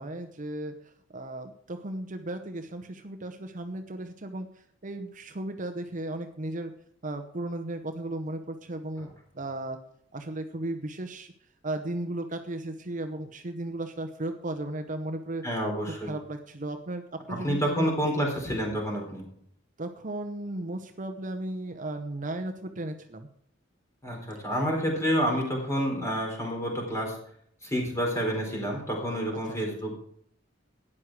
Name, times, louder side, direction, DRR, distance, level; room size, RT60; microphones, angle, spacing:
voice 1, 0.0-6.7 7.0-9.8 10.1-11.3 11.6-15.4 16.0-17.9 19.8-23.3 29.5-29.6, right 1 dB, 40° right, 7 dB, 0.9 m, -35 dB
voice 2, 15.4-16.1 17.3-19.3 24.0-27.2 27.6-29.9, equal, 15° left, 0 dB, 4.2 m, -29 dB
12.5 x 9.8 x 4.8 m, 0.67 s
head